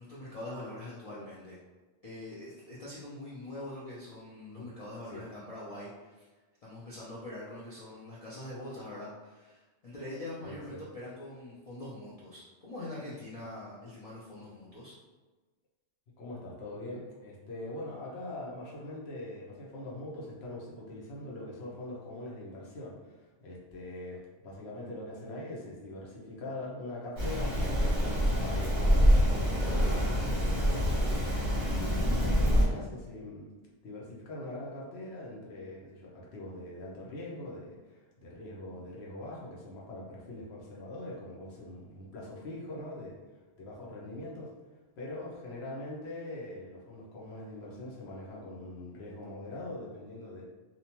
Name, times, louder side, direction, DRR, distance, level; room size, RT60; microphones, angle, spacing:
voice 1, 0.0-1.6 2.0-6.3 6.6-14.9, left 1 dB, 55° left, -8 dB, 0.4 m, -43 dB
voice 2, 10.4-10.8 16.2-33.5 33.8-43.2 43.6-44.5 45.0-50.4, left 1 dB, 70° left, -4 dB, 0.9 m, -42 dB
Rain, 27.2-32.6, equal, 30° right, 0.7 m, -26 dB
2.6 x 2.1 x 2.9 m, 1.3 s
omnidirectional pair, 1.2 m